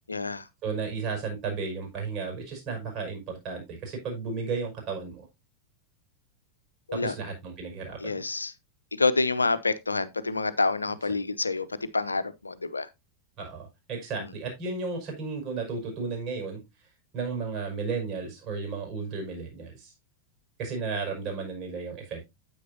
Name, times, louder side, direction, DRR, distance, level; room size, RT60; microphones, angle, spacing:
voice 1, 0.1-0.4 6.9-7.1 8.0-8.5 9.0-12.9, left 3 dB, 80° left, 0.8 m, -27 dB
voice 2, 0.6-5.3 6.9-8.2 13.4-16.6 17.1-19.9 20.6-22.3, right 4 dB, 35° right, 5.4 m, -34 dB
9.3 x 8.9 x 2.8 m
figure-of-eight pair, 90°, 0 cm